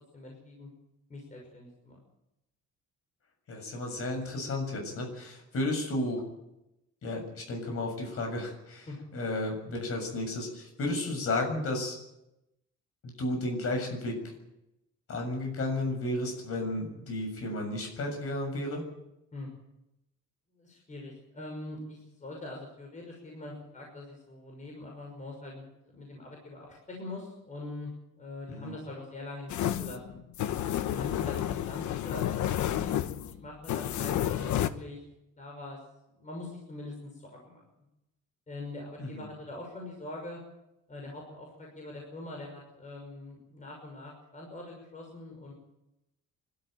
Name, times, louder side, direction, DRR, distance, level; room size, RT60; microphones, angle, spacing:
voice 1, 0.1-0.7 1.1-2.0 8.9-9.0 19.3-19.5 20.6-27.9 28.2-30.2 30.8-35.0 35.4-35.8 36.2-37.6 38.5-40.4 40.9-45.5, left 2 dB, 25° left, 0 dB, 6.0 m, -43 dB
voice 2, 3.5-6.3 7.0-12.0 13.0-14.2 15.1-18.8 28.5-28.7 39.0-39.3, left 2 dB, 50° left, 3 dB, 7.3 m, -33 dB
sound 1, 29.5-34.7, left 11 dB, 80° left, 1.2 m, -30 dB
25.5 x 13.0 x 9.2 m, 0.90 s
cardioid pair, 140°, 29 cm